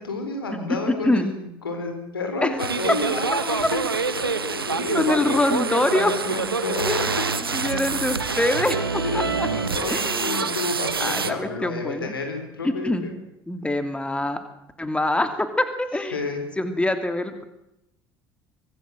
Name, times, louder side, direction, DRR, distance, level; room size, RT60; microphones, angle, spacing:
voice 1, 0.0-3.8 4.1-5.6 5.9-7.1 9.0-13.1 16.1-16.4, left 3 dB, 80° left, 5 dB, 4.6 m, -30 dB
sound 1, 2.6-11.3, right 5 dB, 80° right, 1.3 m, -26 dB
voice 2, 4.9-6.1 6.9-7.0 7.5-9.5 9.9-10.4 11.0-12.1 12.6-13.1 13.5-14.4 14.8-16.2 16.6-17.5, left 1 dB, 10° left, 9 dB, 2.9 m, -24 dB
25.0 x 19.0 x 7.8 m, 0.86 s
figure-of-eight pair, 60°, 12 cm